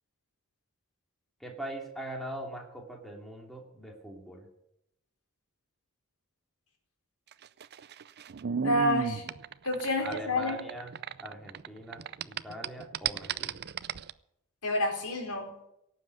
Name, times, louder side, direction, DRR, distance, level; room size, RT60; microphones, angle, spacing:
voice 1, 1.4-4.5 10.0-10.9 11.2-13.6, right 1 dB, ahead, 0 dB, 2.7 m, -42 dB
sound 1, 7.3-11.7 11.9-14.1, right 7 dB, 45° right, 0.5 m, -34 dB
voice 2, 8.6-9.3 9.6-10.6 14.6-15.5, left 1 dB, 80° left, 2 dB, 4.3 m, -29 dB
17.5 x 7.8 x 9.2 m, 0.81 s
head